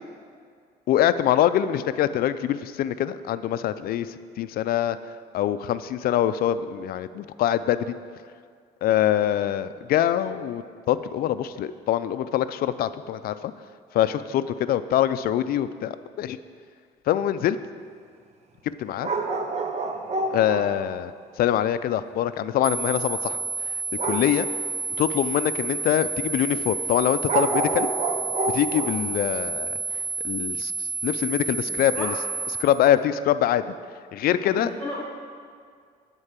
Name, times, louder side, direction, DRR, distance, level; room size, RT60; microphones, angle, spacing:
voice 1, 0.9-4.1 4.4-5.0 5.3-7.9 8.8-13.4 13.9-16.4 17.1-17.6 18.8-19.1 20.3-21.1 21.4-23.4 24.0-24.5 25.0-27.9 28.5-29.8 30.2-30.7 31.0-32.1 32.6-33.6 34.1-34.7, left 11 dB, 65° left, 13 dB, 0.4 m, -24 dB
sound 1, 19.0-20.8 24.0-24.4 26.3-26.4 27.3-29.1 29.9-30.0, right 3 dB, 40° right, 0.8 m, -27 dB
sound 2, 22.6-32.6, right 4 dB, 60° right, 1.1 m, -30 dB
voice 2, 31.7-32.2 34.4-35.0, left 1 dB, 5° left, -6 dB, 1.1 m, -34 dB
9.8 x 4.5 x 7.3 m, 2.1 s
cardioid pair, 110°, 17 cm